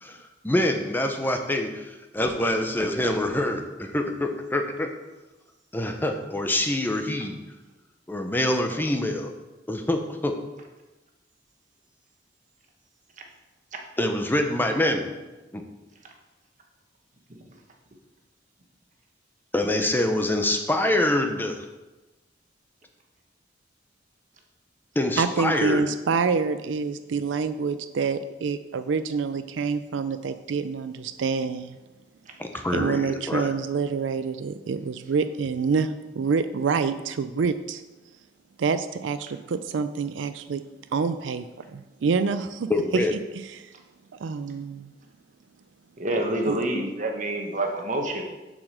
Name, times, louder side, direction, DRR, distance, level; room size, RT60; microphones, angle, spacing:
voice 1, 0.0-4.9 5.7-7.3 8.1-9.3 9.7-10.4 14.0-15.1 15.5-15.6 19.5-21.6 25.0-25.8 32.4-33.5 42.7-43.1, left 1 dB, 10° left, 5 dB, 0.6 m, -25 dB
voice 2, 25.2-31.8 32.7-37.8 38.6-40.6 40.9-42.7 43.1-43.2 43.5-43.7 44.1-44.9 46.5-46.6, right 5 dB, 85° right, 11 dB, 0.4 m, -27 dB
voice 3, 46.0-48.2, right 1 dB, 45° right, 2 dB, 1.3 m, -27 dB
7.1 x 5.1 x 6.3 m, 1.1 s
head